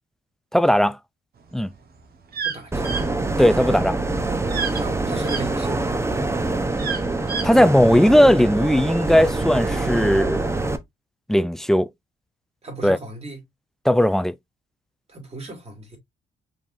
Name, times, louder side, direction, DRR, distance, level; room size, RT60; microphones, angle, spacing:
voice 1, 0.5-1.0 1.5-1.7 3.4-4.0 7.4-10.5 11.3-11.9 12.8-13.0 13.9-14.3, equal, ahead, 0.3 m, -17 dB
sound 1, 1.6-5.4 5.9-7.6, right 6 dB, 50° right, 1.2 m, -30 dB
voice 2, 2.4-3.1 4.5-6.0 12.6-13.4 15.1-16.0, right 2 dB, 30° right, 2.4 m, -36 dB
sound 2, 2.7-10.8, right 2 dB, 15° right, 0.7 m, -25 dB
5.3 x 3.5 x 2.5 m
cardioid pair, 90°, 20 cm